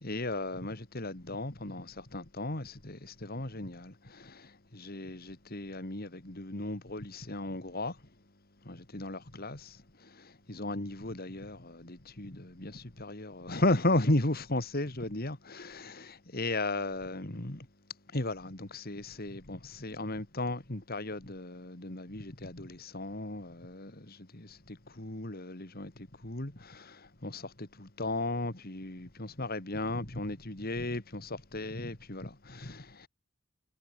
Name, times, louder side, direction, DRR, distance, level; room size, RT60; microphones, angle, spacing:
voice 1, 0.0-8.0 8.6-17.7 18.1-33.1, left 2 dB, 45° left, 2.5 m, -36 dB
head